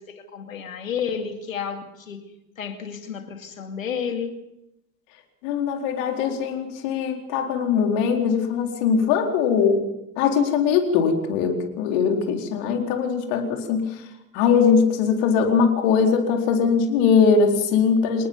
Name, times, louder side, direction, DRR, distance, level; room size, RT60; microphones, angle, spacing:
voice 1, 0.0-2.3 2.6-4.4, left 7 dB, 85° left, 6 dB, 2.6 m, -31 dB
voice 2, 5.4-9.9 10.2-13.9 14.3-18.3, left 6 dB, 65° left, 3 dB, 4.2 m, -21 dB
27.0 x 20.0 x 5.5 m, 0.88 s
figure-of-eight pair, 65°, 39 cm